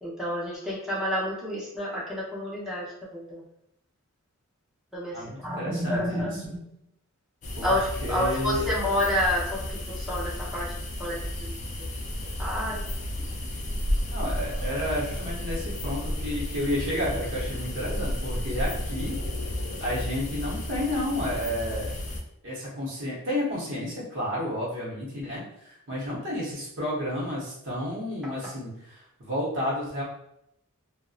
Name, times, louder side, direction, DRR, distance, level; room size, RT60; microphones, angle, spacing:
voice 1, 0.0-2.9 3.1-3.4 4.9-6.6 7.6-10.7 11.0-11.2 11.5-11.6 12.4-12.9 14.7-14.8, left 1 dB, ahead, -8 dB, 0.7 m, -29 dB
voice 2, 5.1-6.4 7.6-7.7 8.0-8.7 14.1-19.2 19.8-21.9 22.4-30.0, left 1 dB, 55° right, -6 dB, 0.8 m, -31 dB
sound 1, 7.4-22.2, left 1 dB, 35° left, 0.3 m, -32 dB
2.5 x 2.1 x 2.4 m, 0.79 s
head